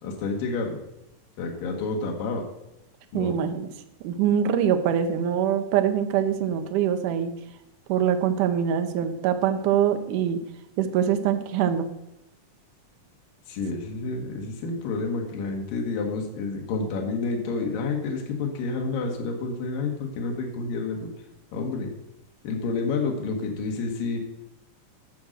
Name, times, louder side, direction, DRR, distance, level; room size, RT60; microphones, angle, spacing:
voice 1, 0.0-0.8 1.4-2.4 3.1-3.4 13.5-21.1 21.5-21.9 22.4-24.2, left 4 dB, 85° left, 1 dB, 3.1 m, -29 dB
voice 2, 3.1-3.7 4.0-7.3 7.9-10.4 10.8-11.8, right 9 dB, 75° right, 7 dB, 2.4 m, -24 dB
11.5 x 6.3 x 6.5 m, 0.86 s
omnidirectional pair, 3.9 m